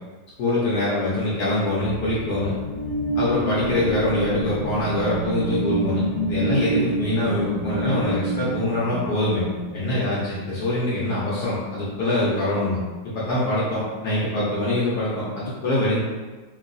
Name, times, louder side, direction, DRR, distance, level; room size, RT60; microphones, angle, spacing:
voice 1, 0.4-2.5 3.2-6.0 6.3-9.4 9.7-12.8 13.1-16.0, left 1 dB, 65° left, -8 dB, 1.1 m, -24 dB
sound 1, 2.0-10.7, right 1 dB, 15° right, 0.8 m, -28 dB
3.0 x 2.8 x 2.5 m, 1.3 s
omnidirectional pair, 2.0 m